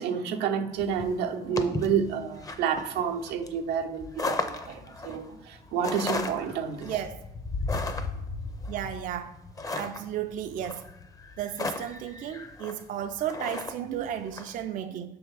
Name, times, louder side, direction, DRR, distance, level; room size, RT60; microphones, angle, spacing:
voice 1, 0.0-6.9 13.8-14.0, right 7 dB, 85° right, 0.7 m, -29 dB
sound 1, 0.8-14.5, left 3 dB, 20° left, 0.5 m, -35 dB
voice 2, 6.8-7.2 8.7-9.4 9.7-10.9 11.4-15.2, right 10 dB, 50° right, 0.4 m, -34 dB
6.3 x 3.5 x 4.6 m
cardioid pair, 110°, 17 cm